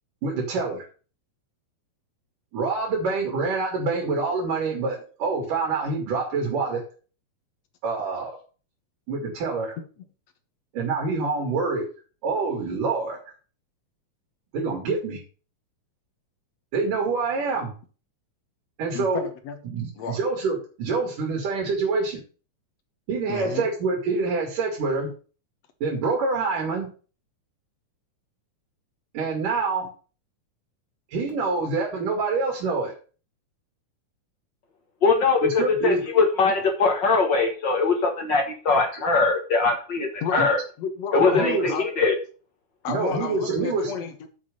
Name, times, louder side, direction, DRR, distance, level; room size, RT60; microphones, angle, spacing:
voice 1, 0.2-0.9 2.5-6.8 7.8-8.3 9.1-9.8 10.7-11.9 12.2-13.2 14.5-15.2 16.7-17.7 18.8-19.3 19.6-22.2 23.1-25.1 25.8-26.9 29.1-29.9 31.1-32.9 35.4-36.1 40.4-40.5 41.2-41.7 42.9-43.9, right 4 dB, 90° right, 4.0 m, -26 dB
voice 2, 18.9-19.6 20.0-20.2 23.3-23.6 40.2-40.5 40.8-41.9 42.8-44.3, left 6 dB, 60° left, 2.2 m, -32 dB
voice 3, 35.0-40.6 41.1-42.1, left 4 dB, 45° left, 1.7 m, -21 dB
7.7 x 5.9 x 6.8 m
omnidirectional pair, 3.6 m